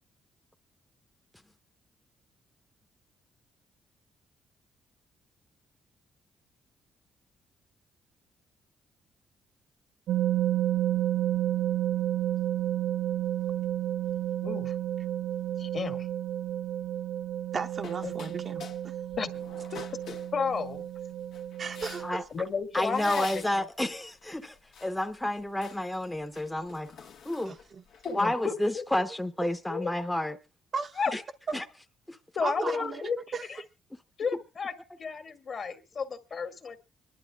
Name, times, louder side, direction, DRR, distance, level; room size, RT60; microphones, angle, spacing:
sound 1, 10.1-22.2, right 12 dB, 85° right, 0.7 m, -31 dB
voice 1, 14.4-14.7 15.6-16.1 18.0-18.1 19.2-19.3 20.3-20.9 22.3-23.4 28.0-28.8 29.7-29.9 31.0-31.1 32.4-33.2 33.5-33.6 34.2-34.7 35.0-36.8, left 5 dB, 50° left, 1.9 m, -32 dB
voice 2, 17.5-19.0 21.6-22.1 27.5-27.8 30.7-31.0 31.5-31.6 32.4-33.4, right 5 dB, 45° right, 0.8 m, -35 dB
sound 2, 17.6-18.8 19.1-20.8 21.3-22.3 22.8-23.6 24.1-25.0 25.4-25.8 26.2-28.4, left 6 dB, 80° left, 1.5 m, -47 dB
voice 3, 22.7-27.5 28.1-30.4 31.1-31.2 31.5-31.6 32.1-32.2 32.6-32.8, left 1 dB, 10° left, 0.9 m, -31 dB
26.0 x 11.5 x 2.3 m
cardioid pair, 90°, 0 cm